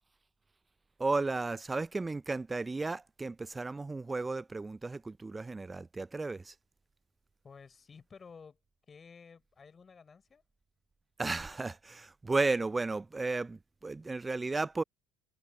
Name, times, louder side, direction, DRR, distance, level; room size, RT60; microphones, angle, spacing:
voice 1, 1.0-6.5 11.2-14.8, right 3 dB, 20° right, 0.4 m, -34 dB
voice 2, 7.4-8.6 8.9-10.4, left 5 dB, 30° left, 4.6 m, -53 dB
hypercardioid pair, 75°, 0 cm